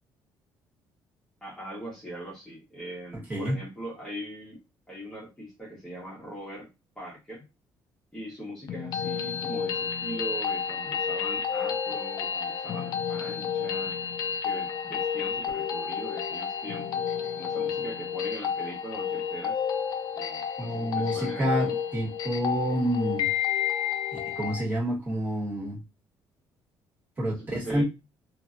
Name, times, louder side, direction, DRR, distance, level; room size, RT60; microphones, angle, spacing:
voice 1, 1.4-4.6 4.9-6.7 6.9-7.4 8.1-13.9 14.4-17.1 17.3-19.6 20.1-21.8 27.2-27.8, right 1 dB, 10° left, -6 dB, 1.2 m, -41 dB
voice 2, 3.1-3.6 20.6-23.3 24.1-25.8 27.2-27.8, equal, 25° right, -6 dB, 1.7 m, -29 dB
sound 1, 8.7-24.7, left 7 dB, 55° left, 0.4 m, -31 dB
2.8 x 2.7 x 2.5 m, 0.24 s
cardioid pair, 165°, 8 cm